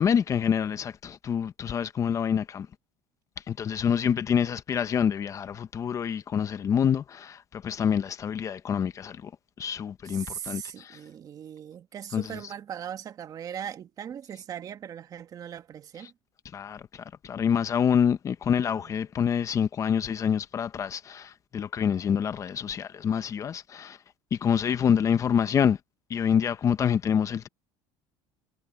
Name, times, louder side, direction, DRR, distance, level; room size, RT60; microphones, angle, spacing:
voice 1, 0.0-2.7 3.5-9.3 9.6-11.0 12.1-12.4 16.5-24.0 24.3-25.8 26.1-27.5, left 8 dB, 30° left, 1.0 m, -26 dB
voice 2, 10.0-16.1 18.7-19.0, right 9 dB, 35° right, 1.6 m, -39 dB
cardioid pair, 130°, 10 cm